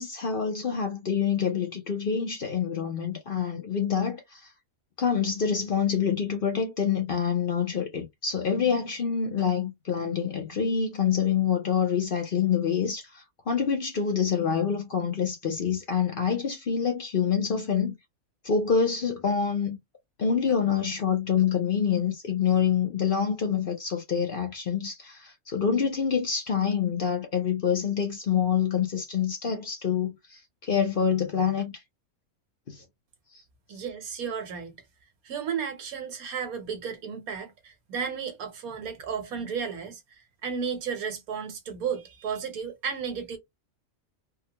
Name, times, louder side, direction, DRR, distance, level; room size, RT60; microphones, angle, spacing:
voice 1, 0.0-4.4 5.0-17.9 18.4-19.8 20.2-31.7 32.7-32.8, left 7 dB, 50° left, 0.7 m, -26 dB
voice 2, 33.7-34.8 35.2-40.0 40.4-43.4, right 6 dB, 85° right, 1.4 m, -33 dB
3.6 x 2.2 x 2.8 m
omnidirectional pair, 1.5 m